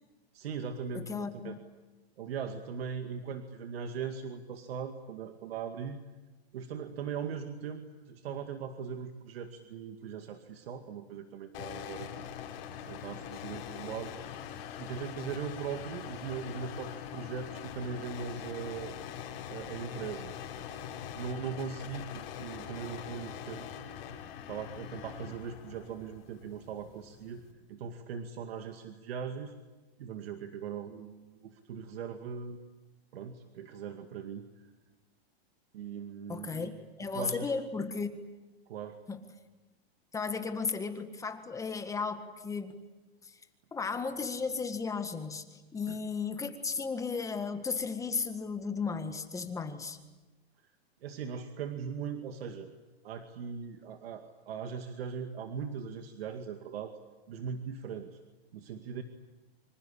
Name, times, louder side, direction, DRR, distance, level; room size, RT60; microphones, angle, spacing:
voice 1, 0.3-1.6 2.2-6.0 6.5-12.2 12.9-14.4 14.8-18.9 19.5-20.4 21.1-23.7 24.5-29.5 30.0-32.6 33.1-34.5 35.7-36.8 37.1-37.5 38.7-39.0 45.9-46.0 51.0-52.7 53.0-57.0 57.3-58.2 58.5-59.0, right 6 dB, 70° right, 6 dB, 2.2 m, -40 dB
voice 2, 0.9-1.6 36.3-36.7 37.0-38.2 39.1-39.2 40.1-42.8 43.2-43.4 43.7-50.0, left 5 dB, 10° left, 8 dB, 1.7 m, -35 dB
sound 1, 11.5-27.5, left 9 dB, 40° left, 5.3 m, -43 dB
26.5 x 25.5 x 8.7 m, 1.1 s
hypercardioid pair, 145°, 32 cm